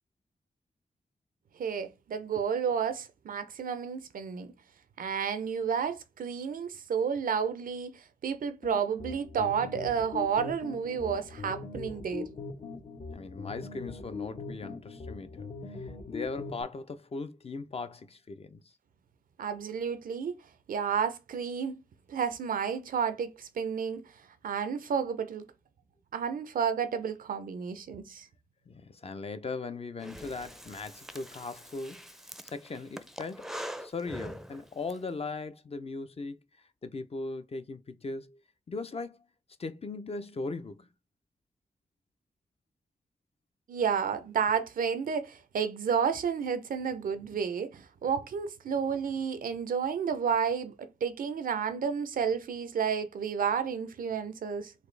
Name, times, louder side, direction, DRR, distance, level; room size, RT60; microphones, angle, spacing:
voice 1, 1.6-4.5 5.0-12.3 19.4-20.4 20.7-21.8 22.1-24.1 24.4-25.5 26.1-28.3 43.7-54.7, right 7 dB, 75° right, 0.6 m, -31 dB
sound 1, 8.6-16.6, left 4 dB, 60° left, 1.1 m, -41 dB
voice 2, 13.1-18.6 28.7-32.1 32.4-33.5 33.8-36.4 36.8-38.4 38.7-39.3 39.6-40.9, left 3 dB, 40° left, 0.6 m, -39 dB
Breathing, 30.0-35.0, equal, ahead, 0.5 m, -43 dB
4.1 x 2.5 x 3.3 m
cardioid pair, 45°, 15 cm